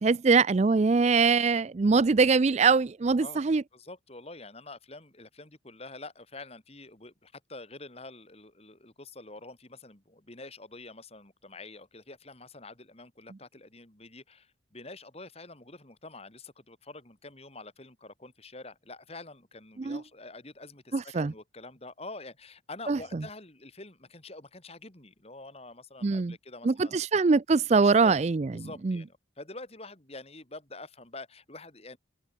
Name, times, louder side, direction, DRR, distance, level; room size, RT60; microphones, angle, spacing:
voice 1, 0.0-3.6 19.8-20.0 20.9-21.3 22.9-23.0 26.0-26.3 26.6-29.0, right 4 dB, 35° right, 0.4 m, -23 dB
voice 2, 3.7-27.0 27.8-28.2 28.5-32.0, left 2 dB, 30° left, 3.0 m, -46 dB
head